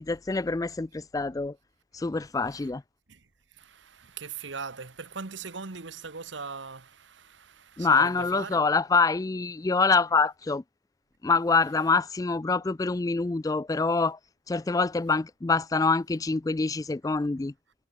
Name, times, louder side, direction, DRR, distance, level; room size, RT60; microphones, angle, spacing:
voice 1, 0.0-1.5 1.9-2.8 7.8-10.6 11.2-14.2 14.5-17.5, left 4 dB, 20° left, 0.4 m, -25 dB
voice 2, 3.6-8.6, right 5 dB, 80° right, 1.3 m, -40 dB
head